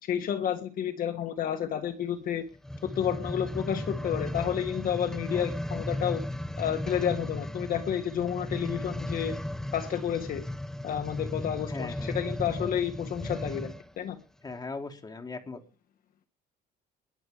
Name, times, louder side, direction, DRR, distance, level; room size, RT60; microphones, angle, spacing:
voice 1, 0.0-2.4 2.8-6.2 6.6-9.4 9.7-10.4 10.8-14.1, left 9 dB, 55° left, 7 dB, 1.6 m, -30 dB
sound 1, 2.6-13.9 14.5-14.6, left 1 dB, 5° left, 0.9 m, -36 dB
voice 2, 11.7-12.2 14.4-15.6, left 3 dB, 25° left, 4 dB, 2.8 m, -39 dB
21.0 x 8.1 x 5.0 m, 0.35 s
cardioid pair, 110°, 17 cm